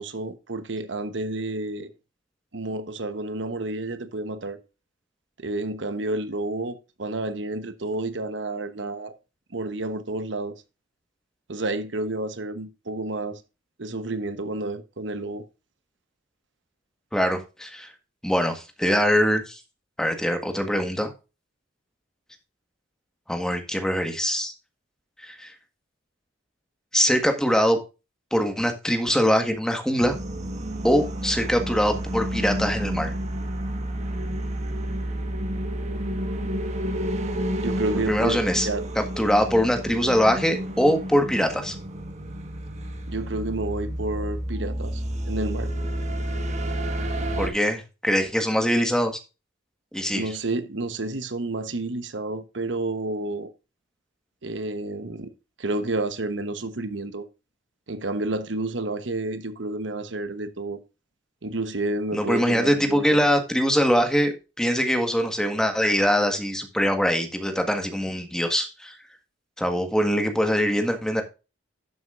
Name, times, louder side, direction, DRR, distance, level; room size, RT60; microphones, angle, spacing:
voice 1, 0.0-1.9 2.5-4.6 5.4-9.1 9.5-10.5 11.5-13.4 13.8-15.4 37.6-38.4 38.6-38.9 43.1-45.7 50.1-53.5 54.4-55.3 55.6-57.3 57.9-60.8 61.4-63.2, right 2 dB, 75° right, 1.1 m, -30 dB
voice 2, 17.1-17.9 18.2-19.6 20.0-21.1 23.3-24.5 25.2-25.5 26.9-27.8 28.3-30.2 30.8-33.1 37.9-38.7 38.9-41.8 47.4-49.2 49.9-50.3 62.1-68.9 69.6-71.2, equal, 5° left, 1.6 m, -23 dB
sound 1, 30.0-47.5, right 1 dB, 40° right, 1.5 m, -30 dB
11.5 x 7.9 x 2.5 m
head